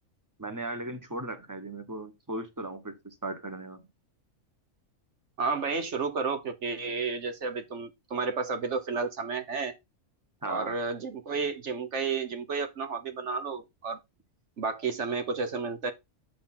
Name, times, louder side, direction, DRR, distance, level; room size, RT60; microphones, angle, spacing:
voice 1, 0.4-3.8 10.4-10.8, right 1 dB, 15° right, 1.3 m, -37 dB
voice 2, 5.4-9.7 10.4-14.0 14.6-15.9, right 4 dB, 60° right, 1.3 m, -31 dB
7.6 x 6.7 x 3.8 m
omnidirectional pair, 1.4 m